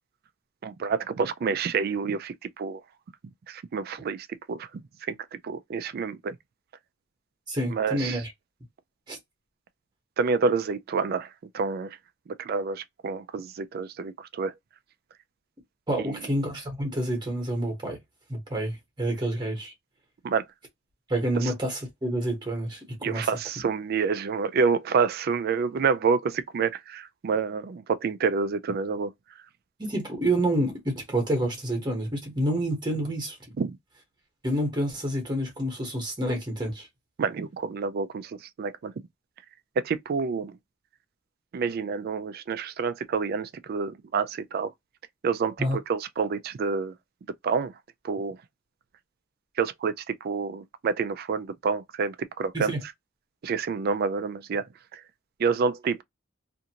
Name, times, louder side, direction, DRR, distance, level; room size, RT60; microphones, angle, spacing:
voice 1, 0.6-2.8 3.5-4.7 5.1-6.4 7.7-8.2 10.2-12.0 12.4-14.5 16.0-16.2 20.2-20.4 21.4-21.5 23.0-29.1 33.6-33.8 37.2-38.9 39.8-40.6 41.5-44.7 45.2-46.9 47.4-47.7 48.0-48.4 49.6-52.8 53.4-54.7 54.9-55.0 55.4-56.0, right 5 dB, 50° right, 0.3 m, -28 dB
voice 2, 7.5-8.3 9.1-9.2 15.9-18.0 18.3-19.7 21.1-23.3 29.8-33.4 34.4-36.9 45.6-45.8 52.5-52.8, right 1 dB, 20° right, 1.0 m, -28 dB
2.6 x 2.4 x 2.8 m
head